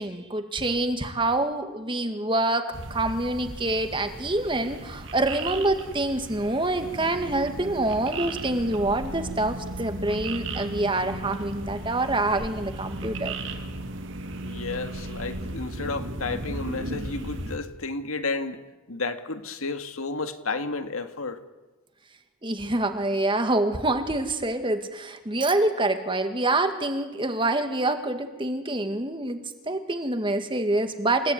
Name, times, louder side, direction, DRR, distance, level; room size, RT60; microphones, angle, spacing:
voice 1, 0.0-13.3 22.4-31.3, right 2 dB, 25° right, 7 dB, 2.0 m, -26 dB
sound 1, 2.7-17.6, right 2 dB, 60° right, 2.6 m, -37 dB
sound 2, 6.8-15.6, right 1 dB, 80° right, 2.6 m, -38 dB
voice 2, 14.4-18.6 18.9-21.4, left 3 dB, 80° left, 8 dB, 1.9 m, -32 dB
29.0 x 18.0 x 9.5 m, 1.2 s
head